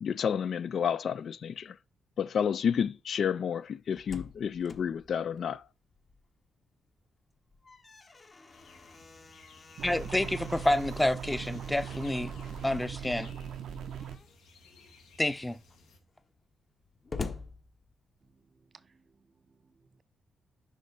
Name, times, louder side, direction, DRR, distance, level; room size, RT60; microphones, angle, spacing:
voice 1, 0.0-1.8 2.2-5.6, left 7 dB, 65° left, 0.3 m, -30 dB
Slam, 3.7-6.5 6.8-6.9 7.4-13.0 13.9-14.4 15.0-15.1 15.3-18.4, left 4 dB, 40° left, 1.0 m, -46 dB
sound 1, 8.5-16.0, left 4 dB, 85° left, 1.5 m, -57 dB
voice 2, 9.8-12.3 12.6-13.3 15.2-15.6, left 1 dB, 15° left, 0.6 m, -28 dB
sound 2, 9.8-14.2, right 8 dB, 75° right, 0.7 m, -40 dB
voice 3, 18.2-20.0, right 4 dB, 45° right, 0.5 m, -63 dB
6.3 x 5.0 x 3.9 m
supercardioid pair, 60°, 0 cm